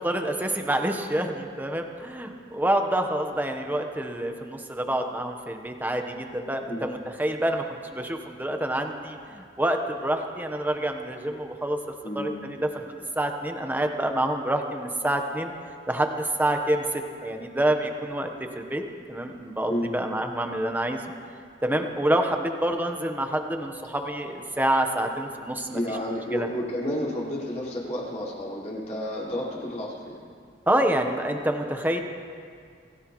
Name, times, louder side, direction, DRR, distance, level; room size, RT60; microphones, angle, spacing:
voice 1, 0.0-7.6 7.9-11.8 12.1-15.5 15.9-18.3 18.5-18.8 19.1-21.0 21.6-25.8 26.3-26.5 30.7-32.0, right 1 dB, 10° right, 4 dB, 1.1 m, -27 dB
voice 2, 12.0-12.4 19.7-20.0 25.7-30.1, equal, 40° left, -7 dB, 4.8 m, -31 dB
27.5 x 17.0 x 3.1 m, 2.2 s
head